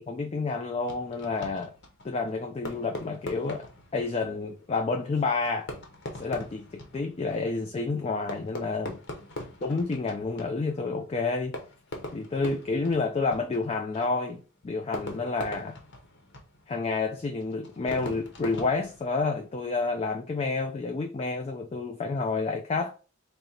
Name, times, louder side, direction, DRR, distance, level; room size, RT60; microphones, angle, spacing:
voice 1, 0.1-1.7 2.0-3.7 3.9-5.7 6.2-9.0 9.6-11.6 12.1-15.8 16.7-22.9, left 3 dB, 30° left, 0.3 m, -29 dB
Fireworks, 0.8-19.6, left 1 dB, 55° left, 0.8 m, -43 dB
3.7 x 2.0 x 4.2 m
head